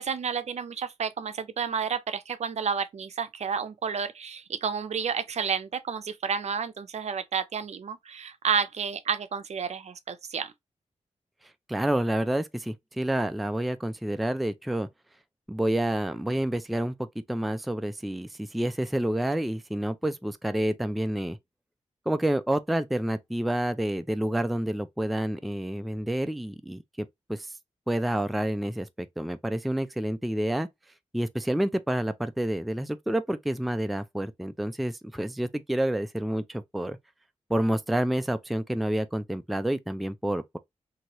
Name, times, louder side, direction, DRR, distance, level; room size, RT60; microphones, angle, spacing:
voice 1, 0.0-10.5, right 6 dB, 70° right, 0.5 m, -31 dB
voice 2, 11.7-14.9 15.5-21.4 22.1-27.5 27.9-30.7 31.1-37.0 37.5-40.6, right 1 dB, ahead, 0.3 m, -29 dB
2.9 x 2.7 x 2.9 m
wide cardioid pair, 85°, 12 cm